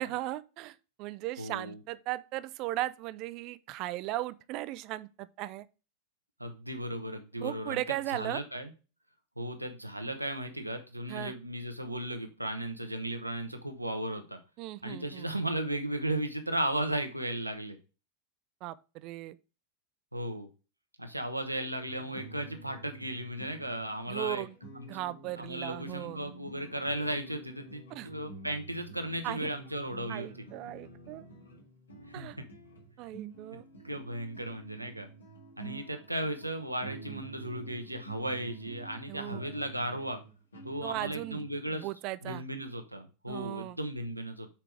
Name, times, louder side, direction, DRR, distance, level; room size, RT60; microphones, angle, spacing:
voice 1, 0.0-5.7 7.4-8.4 11.1-11.3 14.6-15.3 18.6-19.4 24.1-24.5 24.9-26.2 27.9-28.1 29.2-29.5 30.1-31.3 32.1-32.4 33.0-33.6 37.1-37.2 39.1-39.4 40.8-41.4 41.7-42.4 43.3-43.8, right 16 dB, 40° right, 0.4 m, -37 dB
voice 2, 1.4-1.8 6.4-7.8 8.1-8.7 9.4-14.4 14.8-17.8 20.1-20.5 21.0-24.4 24.8-24.9 25.4-30.3 32.1-32.3 33.8-35.1 35.6-40.2 40.6-41.9 42.2-44.5, right 1 dB, 85° right, 1.0 m, -35 dB
sound 1, 21.8-41.7, right 3 dB, 75° left, 1.8 m, -49 dB
5.8 x 4.6 x 4.8 m
figure-of-eight pair, 90°, 0 cm